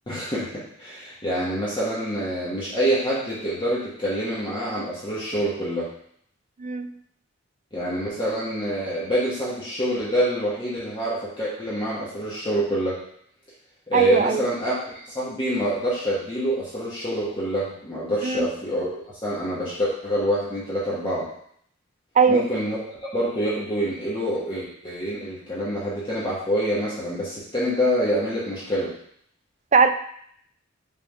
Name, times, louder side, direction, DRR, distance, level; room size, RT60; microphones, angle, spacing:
voice 1, 0.1-5.9 7.7-13.0 13.9-18.9 19.2-21.3 22.3-22.8 23.1-28.9, equal, 25° left, -8 dB, 1.4 m, -26 dB
voice 2, 6.6-6.9 13.9-14.4 18.2-18.5 22.2-22.5 29.7-29.9, right 5 dB, 35° right, 9 dB, 0.4 m, -19 dB
5.8 x 3.7 x 4.9 m, 0.66 s
head